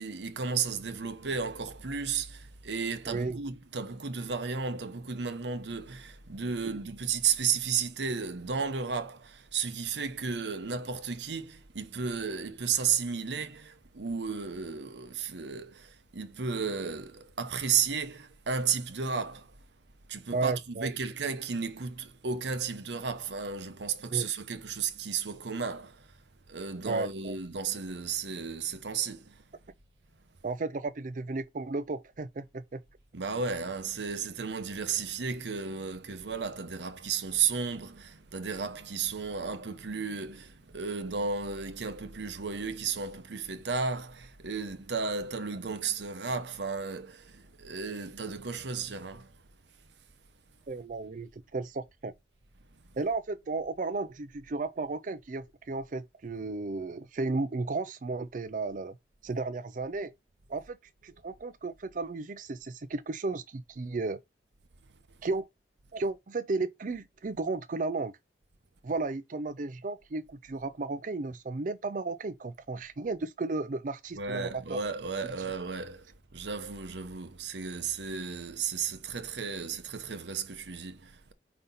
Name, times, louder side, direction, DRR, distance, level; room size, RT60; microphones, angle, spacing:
voice 1, 0.0-19.6 20.1-26.1 26.5-29.4 33.1-49.3 74.2-81.3, right 6 dB, 80° right, 0.8 m, -33 dB
voice 2, 3.1-3.4 6.7-6.8 20.3-20.9 24.1-24.3 26.8-27.4 30.4-32.8 50.7-52.1 53.0-58.9 59.2-60.1 60.5-60.8 61.0-64.2 65.2-65.5 65.9-68.1 68.8-74.8, right 3 dB, 45° right, 0.4 m, -34 dB
5.1 x 4.2 x 5.4 m
head